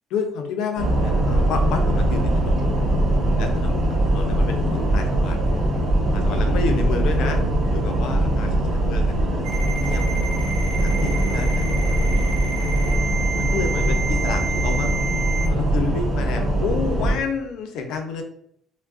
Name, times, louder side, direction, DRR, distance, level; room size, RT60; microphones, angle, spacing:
voice 1, 0.1-2.7 3.4-5.4 6.1-7.4 7.7-10.0 10.8-12.7 13.4-15.0 15.5-18.2, left 5 dB, 75° left, 4 dB, 0.6 m, -30 dB
sound 1, 0.8-17.2, right 1 dB, 45° right, 1.1 m, -21 dB
Ringtone, 9.4-15.5, right 5 dB, 75° right, 0.7 m, -30 dB
4.7 x 2.2 x 2.5 m, 0.70 s
cardioid pair, 130°, 0 cm